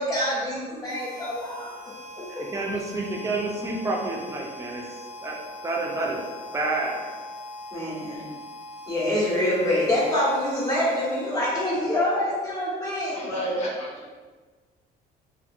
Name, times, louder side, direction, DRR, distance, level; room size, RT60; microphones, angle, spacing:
voice 1, 0.0-1.8 2.2-2.5 7.7-8.2 8.9-13.6, left 1 dB, 20° left, -9 dB, 1.2 m, -26 dB
Harmonica, 0.8-11.8, left 1 dB, 65° left, 0.9 m, -42 dB
voice 2, 2.3-4.8 5.2-5.4 5.6-6.2 6.5-7.0, right 2 dB, 20° right, -1 dB, 0.5 m, -29 dB
voice 3, 13.1-14.1, equal, 40° left, -4 dB, 0.7 m, -38 dB
2.6 x 2.5 x 2.4 m, 1.4 s
cardioid pair, 110°, 17 cm